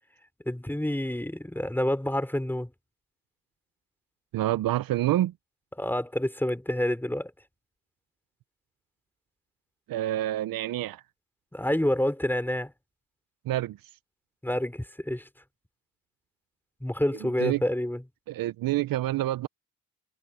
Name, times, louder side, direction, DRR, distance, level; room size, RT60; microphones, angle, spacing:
voice 1, 0.4-2.7 5.8-7.3 11.5-12.7 14.4-15.3 16.8-18.0, left 1 dB, 5° left, 3.2 m, -28 dB
voice 2, 4.3-5.3 9.9-11.0 13.5-13.8 17.2-17.6 18.3-19.5, right 14 dB, 75° right, 0.7 m, -27 dB
cardioid pair, 70°, 35 cm